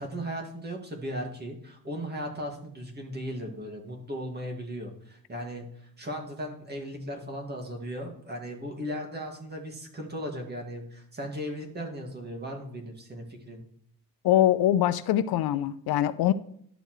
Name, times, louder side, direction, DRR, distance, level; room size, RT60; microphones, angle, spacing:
voice 1, 0.0-13.6, equal, 25° right, 2.0 m, -37 dB
voice 2, 14.2-16.3, left 12 dB, 80° left, 0.6 m, -23 dB
11.0 x 7.0 x 3.1 m
cardioid pair, 110°, 36 cm